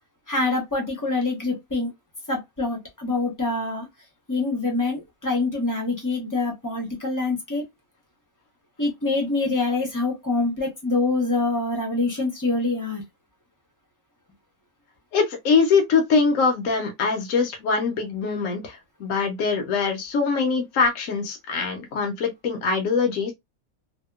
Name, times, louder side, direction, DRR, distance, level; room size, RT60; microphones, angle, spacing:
voice 1, 0.3-1.9 2.3-3.9 4.3-7.6 8.8-13.0, left 3 dB, 20° left, 0.6 m, -25 dB
voice 2, 15.1-23.3, left 5 dB, 70° left, 1.0 m, -23 dB
2.8 x 2.2 x 2.2 m
omnidirectional pair, 1.5 m